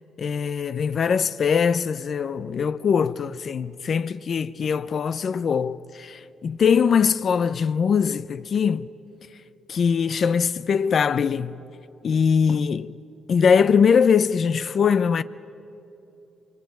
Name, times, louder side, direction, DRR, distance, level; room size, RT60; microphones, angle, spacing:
voice 1, 0.2-8.9 9.7-11.6 12.0-12.9 13.3-15.2, left 6 dB, 50° left, 0.6 m, -22 dB
26.0 x 23.5 x 9.3 m
cardioid pair, 90°, 0 cm